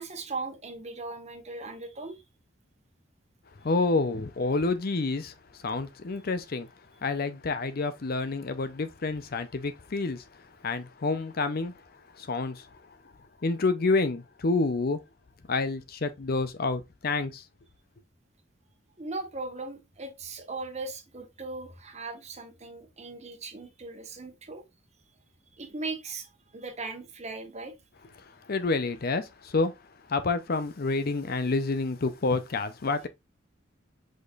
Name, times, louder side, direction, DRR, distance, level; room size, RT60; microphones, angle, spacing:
voice 1, 0.0-2.2 19.0-24.6 25.6-27.7, right 3 dB, 35° right, 1.1 m, -38 dB
voice 2, 3.6-5.3 5.6-6.7 7.0-11.7 12.1-12.8 13.4-15.0 15.5-17.4 28.4-29.8 30.1-33.1, left 3 dB, 50° left, 0.6 m, -28 dB
5.1 x 4.2 x 2.4 m
head